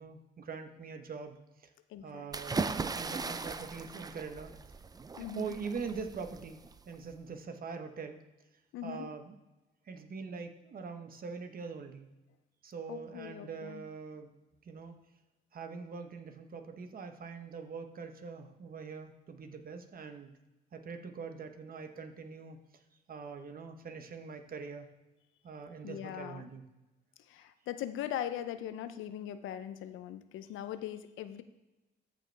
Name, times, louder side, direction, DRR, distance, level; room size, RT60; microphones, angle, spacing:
voice 1, 0.0-1.7 2.0-2.6 2.9-4.5 5.3-6.6 6.9-8.2 8.8-9.4 9.9-12.1 12.6-14.3 14.6-15.0 15.5-20.3 20.7-22.8 23.1-24.9 25.4-26.6, right 5 dB, 45° right, 6 dB, 1.0 m, -43 dB
voice 2, 1.9-2.3 5.2-5.7 8.7-9.1 12.9-13.8 25.8-26.5 27.2-31.4, left 10 dB, 85° left, 11 dB, 0.6 m, -40 dB
sound 1, 2.3-7.1, right 4 dB, 20° right, 0.4 m, -38 dB
14.0 x 5.2 x 3.4 m, 1.0 s
cardioid pair, 90°, 20 cm